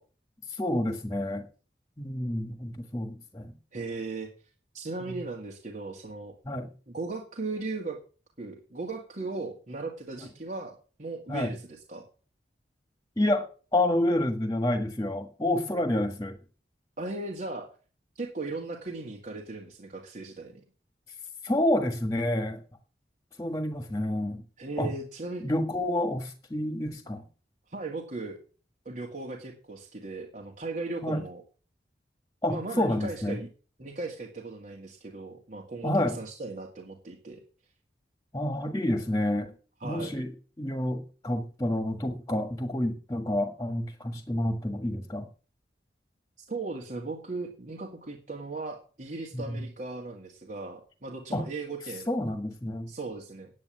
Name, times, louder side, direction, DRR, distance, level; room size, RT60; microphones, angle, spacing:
voice 1, 0.5-1.4 2.0-3.5 6.4-6.7 10.2-10.3 11.3-11.5 13.2-16.4 21.4-22.6 23.4-24.4 24.8-24.9 25.4-27.2 31.0-31.2 32.4-33.4 35.8-36.2 38.3-39.5 39.8-40.3 40.6-45.3 49.3-49.6 51.3-51.5 52.1-52.9, left 1 dB, 20° left, 6 dB, 1.5 m, -29 dB
voice 2, 3.7-4.3 4.7-6.3 6.9-8.0 8.4-12.0 17.0-17.7 18.2-20.6 24.6-25.4 27.7-28.4 28.9-31.4 32.5-33.5 33.8-37.4 39.8-40.1 46.5-52.1 52.9-53.5, right 3 dB, 45° right, -1 dB, 2.0 m, -37 dB
9.6 x 8.9 x 7.6 m, 0.38 s
head